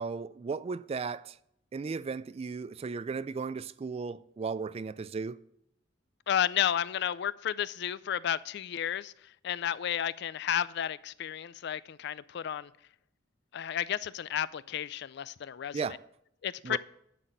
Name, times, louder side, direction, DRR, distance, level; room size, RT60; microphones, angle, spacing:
voice 1, 0.0-1.4 1.7-5.4 15.7-16.0 16.6-16.8, right 5 dB, 30° right, 0.3 m, -35 dB
voice 2, 6.3-12.7 13.5-15.8 16.4-16.8, left 9 dB, 65° left, 0.4 m, -32 dB
11.0 x 4.1 x 7.9 m
head